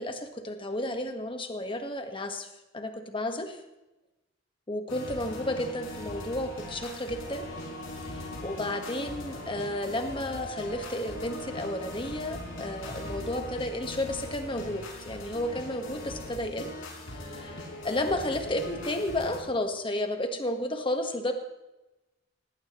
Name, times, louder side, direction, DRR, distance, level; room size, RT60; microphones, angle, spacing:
voice 1, 0.0-2.5 2.7-3.6 4.7-7.5 8.0-16.7 17.1-21.3, left 1 dB, 25° left, 6 dB, 1.5 m, -32 dB
sound 1, 4.9-19.4, left 1 dB, 80° left, 5.4 m, -40 dB
18.5 x 17.0 x 3.2 m, 1.0 s
head